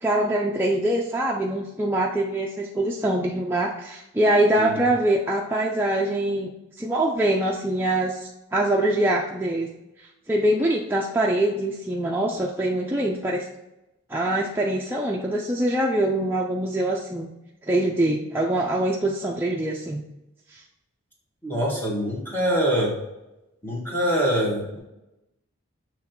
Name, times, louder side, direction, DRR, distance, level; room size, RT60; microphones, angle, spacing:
voice 1, 0.0-6.5 6.8-9.7 10.3-13.5 14.1-17.3 17.7-20.0 20.5-20.6, right 1 dB, 10° right, -3 dB, 0.4 m, -24 dB
voice 2, 21.4-22.9 23.6-24.8, equal, 10° left, -4 dB, 1.7 m, -24 dB
7.3 x 3.1 x 4.5 m, 0.92 s
head